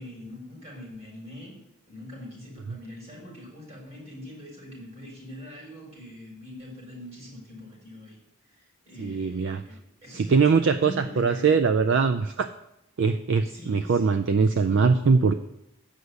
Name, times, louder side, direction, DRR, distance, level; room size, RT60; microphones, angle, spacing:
voice 1, 0.0-1.5 1.9-8.2 8.5-11.6 13.4-14.1 14.5-14.9, left 1 dB, 30° right, -2 dB, 4.8 m, -43 dB
voice 2, 9.0-9.6 10.1-12.5 13.0-15.3, right 5 dB, 55° right, 10 dB, 0.4 m, -22 dB
8.1 x 6.5 x 8.1 m, 0.85 s
head